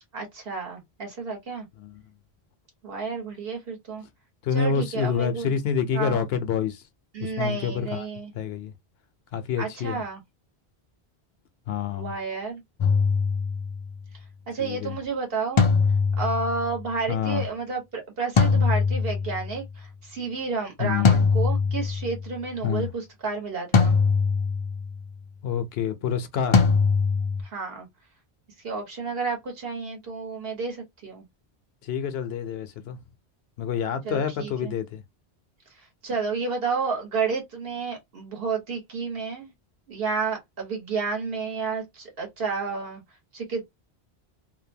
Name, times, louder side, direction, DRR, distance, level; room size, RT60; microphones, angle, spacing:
voice 1, 0.1-1.7 2.8-4.0 4.5-5.5 5.9-6.2 7.1-8.3 9.6-10.2 11.9-12.6 14.5-15.7 16.2-24.0 27.4-27.9 28.6-31.2 34.0-34.7 36.0-39.5 39.9-43.0 43.3-43.6, right 4 dB, 65° right, 1.3 m, -31 dB
voice 2, 4.4-6.8 7.2-8.1 8.3-8.7 9.3-10.0 11.7-12.1 14.6-15.0 17.1-17.4 20.8-21.1 22.6-22.9 25.4-26.8 31.8-33.0 33.6-35.0, left 7 dB, 75° left, 0.8 m, -27 dB
sound 1, 12.8-13.8 15.6-16.7 18.4-19.5 21.1-22.2 23.7-24.9 26.5-27.4, left 5 dB, 45° left, 0.4 m, -21 dB
2.7 x 2.1 x 2.6 m
omnidirectional pair, 1.1 m